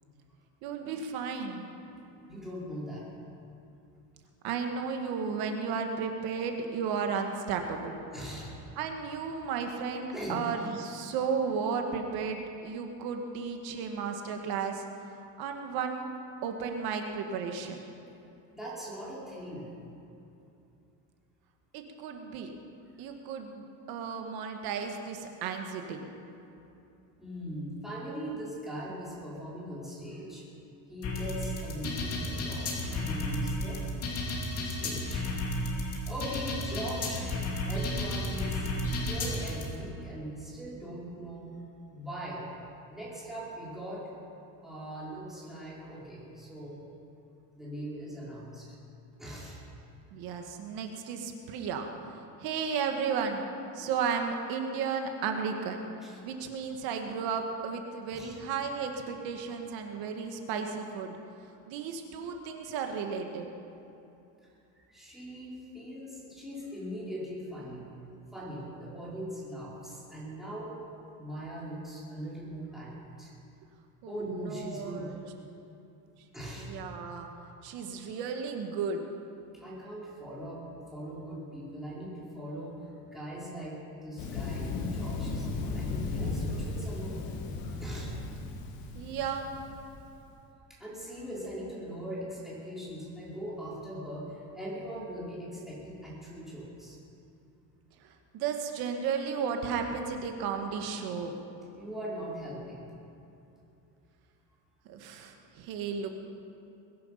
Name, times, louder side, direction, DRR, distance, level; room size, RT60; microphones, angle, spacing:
voice 1, 0.6-1.7 4.4-8.0 8.8-14.8 15.4-16.1 16.4-17.9 21.7-22.5 23.0-26.0 50.1-51.9 52.4-53.4 53.7-55.9 56.2-61.2 61.7-63.5 74.0-74.2 74.5-75.2 76.6-77.3 77.6-79.0 88.9-89.5 98.0-101.3 104.8-106.1, right 6 dB, 65° right, 4 dB, 1.7 m, -34 dB
voice 2, 2.2-3.0 8.1-8.5 10.1-10.4 18.5-19.7 27.2-30.4 30.9-33.9 34.6-35.3 36.1-37.3 37.6-38.7 39.1-41.5 41.9-42.5 42.9-44.1 44.6-46.8 47.5-48.7 49.2-49.6 56.0-56.2 58.1-58.3 64.8-67.9 68.3-70.7 71.2-73.3 74.1-75.1 76.3-76.7 79.6-80.6 80.9-82.8 83.1-87.2 87.8-88.1 90.8-97.0 101.7-102.8, equal, ahead, -8 dB, 4.5 m, -40 dB
sound 1, 31.0-39.6, left 1 dB, 35° left, 2.8 m, -32 dB
Thunder, 84.2-90.0, left 3 dB, 60° left, 2.0 m, -35 dB
22.0 x 10.5 x 5.7 m, 2.8 s
cardioid pair, 155°, 40 cm